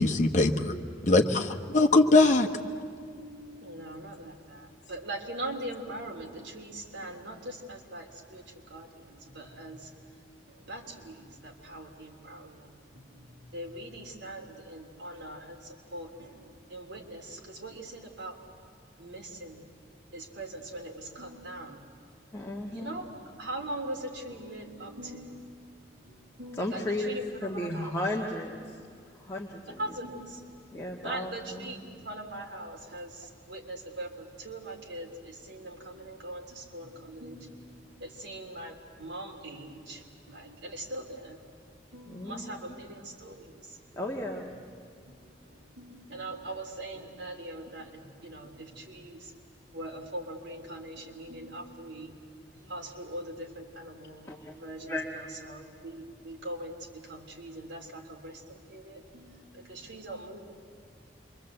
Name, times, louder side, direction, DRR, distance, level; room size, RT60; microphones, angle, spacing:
voice 1, 0.0-0.7 1.0-2.5, left 2 dB, 40° left, 3 dB, 1.3 m, -21 dB
voice 2, 3.0-8.4 8.7-9.9 10.5-18.4 19.0-19.6 20.1-21.8 22.7-23.1 23.4-25.5 26.0-27.2 27.5-27.9 28.6-28.7 29.7-30.4 31.0-37.5 38.0-41.4 41.9-43.8 45.1-49.3 49.7-52.1 52.5-54.3 54.5-55.0 55.4-60.5, right 1 dB, 75° right, 1 dB, 3.2 m, -41 dB
voice 3, 22.3-23.0 26.5-28.8 29.1-29.9 30.7-31.7 42.1-42.8 43.9-44.5 54.3-54.6 54.8-55.1, left 1 dB, 15° left, -2 dB, 1.7 m, -35 dB
27.5 x 23.5 x 8.0 m, 2.3 s
head